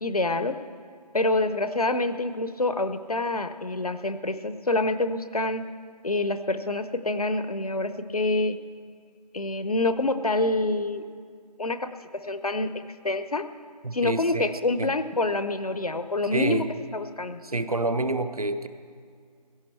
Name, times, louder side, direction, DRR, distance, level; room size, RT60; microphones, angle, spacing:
voice 1, 0.0-0.6 1.1-5.7 6.0-8.6 9.3-11.0 11.6-13.5 13.9-16.7 16.9-17.4, left 2 dB, 60° left, 11 dB, 0.8 m, -27 dB
voice 2, 13.8-14.5 14.8-14.9 16.3-16.7 17.4-18.7, right 2 dB, 60° right, 10 dB, 0.8 m, -27 dB
16.5 x 14.0 x 4.4 m, 2.1 s
figure-of-eight pair, 175°, 21 cm